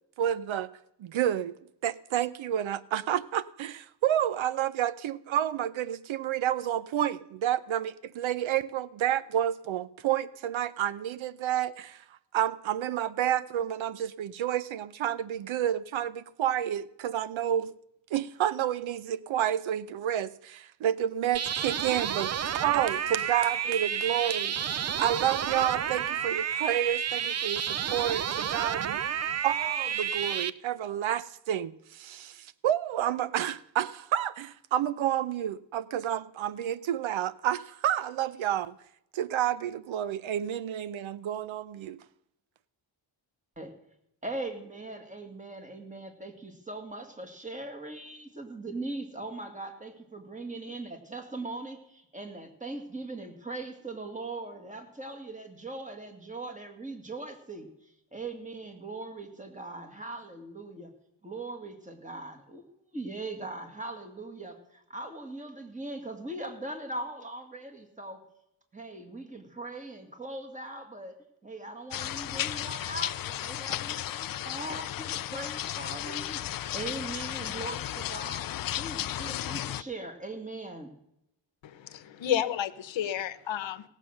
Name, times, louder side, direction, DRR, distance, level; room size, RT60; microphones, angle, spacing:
voice 1, 0.2-0.7 1.0-1.6 1.8-12.0 12.3-17.7 18.1-24.7 25.0-29.0 29.4-38.7 39.1-42.0, right 11 dB, 80° right, 0.7 m, -30 dB
sound 1, 21.3-30.5, right 8 dB, 35° right, 0.4 m, -31 dB
voice 2, 44.2-57.7 58.1-60.9 61.2-68.2 68.7-71.2 71.4-78.4 78.7-80.9, right 2 dB, 15° right, 2.2 m, -40 dB
sound 2, 71.9-79.8, left 12 dB, 50° left, 0.4 m, -34 dB
voice 3, 81.6-83.8, left 10 dB, 70° left, 1.0 m, -31 dB
17.5 x 7.5 x 6.5 m
cardioid pair, 95°, 47 cm